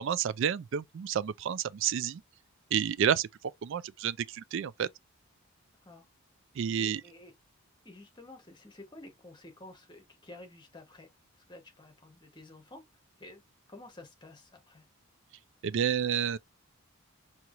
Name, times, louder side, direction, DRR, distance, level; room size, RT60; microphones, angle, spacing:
voice 1, 0.0-2.2 2.7-3.3 3.6-4.9 6.6-7.0 15.6-16.4, right 8 dB, 55° right, 0.3 m, -30 dB
voice 2, 6.8-7.3 7.8-11.1 11.3-12.8 13.2-13.4 13.7-14.9, left 2 dB, 20° left, 1.0 m, -51 dB
4.5 x 2.8 x 2.4 m
head